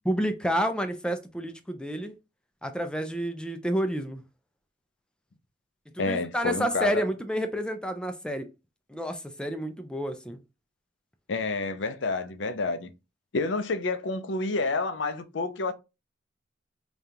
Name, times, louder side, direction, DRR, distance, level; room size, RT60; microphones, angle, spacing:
voice 1, 0.0-2.2 2.6-4.2 5.9-8.5 8.9-10.4, equal, 5° left, 0.4 m, -29 dB
voice 2, 6.0-7.0 11.3-12.9 13.3-15.7, left 3 dB, 70° left, 0.5 m, -29 dB
5.0 x 2.4 x 2.8 m
head